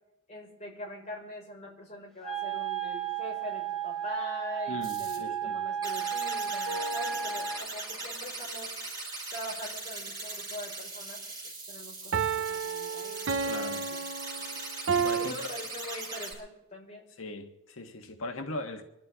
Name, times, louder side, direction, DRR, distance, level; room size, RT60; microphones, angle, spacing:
voice 1, 0.3-8.8 9.3-11.2 11.7-14.0 14.4-14.5 15.2-17.0, equal, 35° left, 5.3 m, -42 dB
Wind instrument woodwind instrument, 2.2-7.6, right 8 dB, ahead, 1.7 m, -33 dB
voice 2, 4.7-5.6 13.4-13.8 15.0-15.5 17.2-18.8, left 2 dB, 85° left, 1.5 m, -39 dB
sound 1, 4.8-5.2 5.8-16.3, right 3 dB, 20° right, 5.5 m, -40 dB
sound 2, 6.7-7.7 12.1-15.3, right 6 dB, 70° right, 0.6 m, -32 dB
26.5 x 12.0 x 3.7 m
head